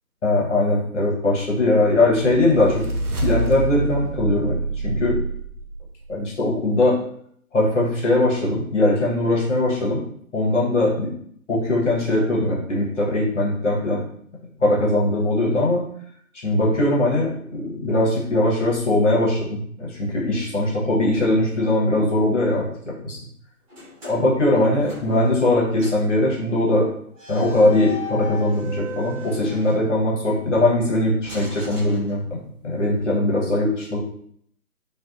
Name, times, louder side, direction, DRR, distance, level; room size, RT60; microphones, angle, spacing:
voice 1, 0.2-2.9 3.2-4.6 4.8-5.1 6.1-7.0 7.5-10.0 10.3-11.1 11.5-14.0 14.6-15.8 16.4-23.2 24.0-26.9 27.3-34.0, left 1 dB, 55° left, -3 dB, 1.1 m, -20 dB
sound 1, 1.9-6.1, right 2 dB, 85° right, 0.7 m, -27 dB
sound 2, 23.7-25.5 25.8-26.1 27.1-30.3 31.2-32.6, left 1 dB, 25° right, 0.9 m, -38 dB
2.6 x 2.2 x 2.4 m, 0.65 s
figure-of-eight pair, 145°, 44 cm